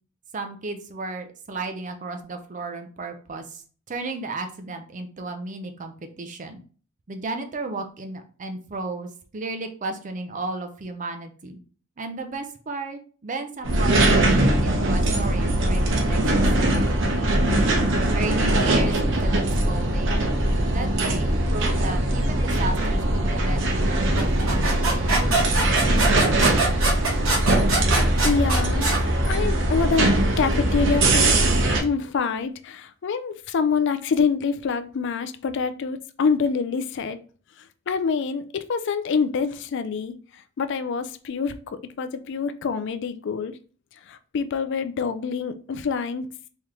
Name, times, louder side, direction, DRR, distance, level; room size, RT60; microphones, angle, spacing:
voice 1, 0.3-3.6 3.9-6.6 7.1-11.6 12.0-17.0 18.1-20.4 20.7-26.4, right 3 dB, 40° right, 6 dB, 0.5 m, -34 dB
sound 1, 13.6-31.8, right 1 dB, 65° right, 0.8 m, -21 dB
sound 2, 24.2-29.0, right 3 dB, 85° right, 1.1 m, -24 dB
voice 2, 28.2-28.9 29.3-31.4 31.8-37.2 37.9-40.2 40.6-43.5 44.1-46.3, left 5 dB, 60° left, 11 dB, 0.4 m, -26 dB
3.7 x 3.0 x 3.2 m, 0.40 s
head